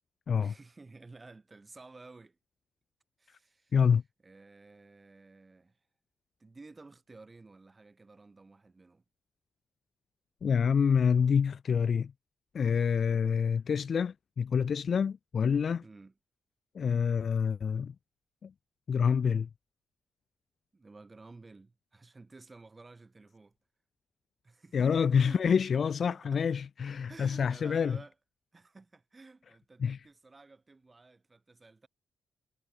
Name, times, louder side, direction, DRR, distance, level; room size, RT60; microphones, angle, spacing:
voice 1, 0.4-2.4 3.2-3.8 4.2-5.8 6.4-9.0 13.0-13.2 15.8-16.1 20.7-23.6 24.4-25.5 25.7-26.4 27.1-28.1 28.5-31.9, right 3 dB, 15° right, 4.1 m, -53 dB
voice 2, 3.7-4.0 10.4-12.1 12.5-15.8 16.7-17.9 18.4-18.5 18.9-19.5 24.7-28.0 29.8-30.0, left 6 dB, 40° left, 0.3 m, -27 dB
wide cardioid pair, 175°, 0 cm